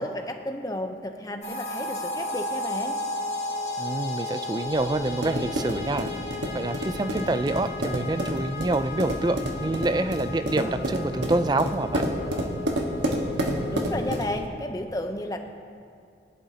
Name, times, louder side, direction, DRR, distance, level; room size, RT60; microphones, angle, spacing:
voice 1, 0.0-3.0 13.7-15.4, left 1 dB, 20° left, 5 dB, 0.7 m, -32 dB
sound 1, 1.4-14.4, left 2 dB, 40° left, 1.9 m, -35 dB
voice 2, 3.8-6.1 6.5-12.0, right 2 dB, 25° right, 11 dB, 0.4 m, -27 dB
sound 2, 4.8-14.5, right 1 dB, 85° right, 1.5 m, -30 dB
20.0 x 11.0 x 2.9 m, 2.3 s
head